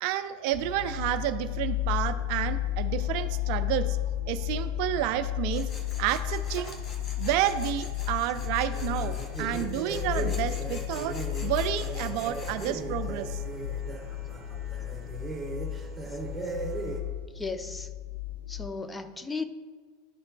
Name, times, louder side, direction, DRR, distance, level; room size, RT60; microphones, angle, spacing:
voice 1, 0.0-4.0 4.3-5.7 6.0-6.8 7.2-11.1 11.4-13.4, right 12 dB, 55° right, 10 dB, 0.4 m, -30 dB
sound 1, 0.5-18.7, left 13 dB, 85° left, 0.7 m, -33 dB
Tools, 5.5-12.7, left 2 dB, 30° left, 1.2 m, -46 dB
sound 2, 8.7-17.0, right 3 dB, 15° right, 1.6 m, -38 dB
voice 2, 17.4-17.9 18.5-19.4, left 4 dB, 10° left, 8 dB, 0.5 m, -35 dB
12.0 x 4.3 x 2.3 m, 1.5 s
figure-of-eight pair, 85°, 0 cm